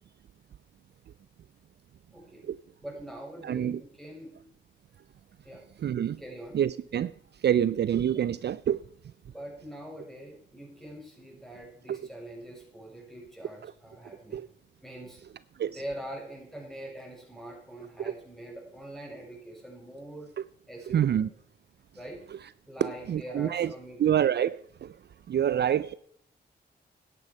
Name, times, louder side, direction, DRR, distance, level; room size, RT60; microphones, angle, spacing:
voice 1, 2.1-2.5 2.8-4.3 5.4-5.6 6.2-6.6 9.2-14.4 14.8-15.2 15.7-20.3 20.7-21.2 21.9-22.2 22.7-24.2, right 1 dB, ahead, 6.6 m, -43 dB
voice 2, 3.4-3.8 5.8-6.2 6.5-7.1 7.4-8.8 11.9-12.0 13.6-13.7 14.3-14.5 15.6-15.8 20.9-21.3 22.8-23.7 24.0-25.0 25.3-25.9, right 10 dB, 55° right, 0.4 m, -27 dB
11.5 x 9.3 x 5.4 m
cardioid pair, 50°, 20 cm